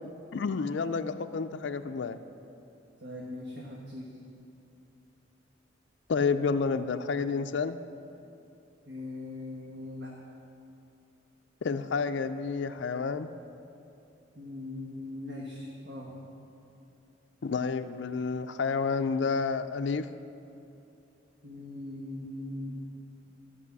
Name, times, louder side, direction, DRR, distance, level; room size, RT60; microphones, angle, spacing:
voice 1, 0.3-2.2 6.1-7.8 11.6-13.3 17.4-20.1, left 5 dB, 65° left, 9 dB, 0.4 m, -30 dB
voice 2, 3.0-4.1 8.8-10.1 14.3-16.1 21.4-22.7, left 2 dB, 60° right, -4 dB, 1.4 m, -40 dB
13.5 x 5.5 x 8.2 m, 2.7 s
head